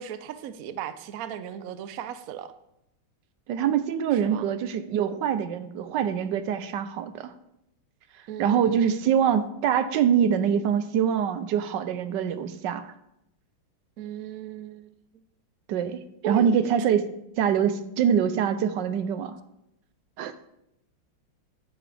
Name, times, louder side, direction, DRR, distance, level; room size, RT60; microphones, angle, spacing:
voice 1, 0.0-2.5 4.1-4.4 8.3-9.1 14.0-14.9 16.2-16.5, right 9 dB, 85° right, 11 dB, 0.7 m, -36 dB
voice 2, 3.5-7.3 8.4-12.9 15.7-17.0 17.4-19.4 20.2-20.3, right 8 dB, 70° right, 11 dB, 1.2 m, -24 dB
11.0 x 8.8 x 3.4 m, 0.83 s
omnidirectional pair, 2.3 m